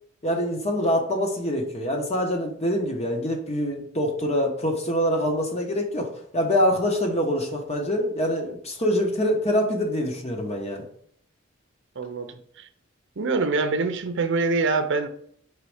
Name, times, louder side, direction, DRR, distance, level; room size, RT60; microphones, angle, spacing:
voice 1, 0.2-10.8, equal, 35° left, 2 dB, 1.1 m, -25 dB
voice 2, 12.0-12.7 13.2-15.1, right 3 dB, 65° right, 9 dB, 0.6 m, -25 dB
4.9 x 4.1 x 4.9 m, 0.63 s
head